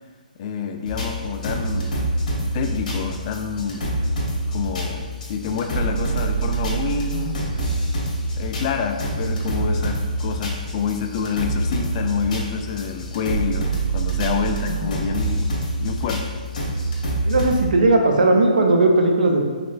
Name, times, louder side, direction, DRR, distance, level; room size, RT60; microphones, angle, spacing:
voice 1, 0.4-7.4 8.3-16.2, left 6 dB, 40° left, 5 dB, 0.4 m, -28 dB
sound 1, 0.8-17.6, right 2 dB, 60° left, 1.2 m, -26 dB
voice 2, 17.2-19.4, right 2 dB, 70° right, 2 dB, 0.6 m, -17 dB
4.1 x 3.2 x 2.5 m, 1.5 s
hypercardioid pair, 140°, 5 cm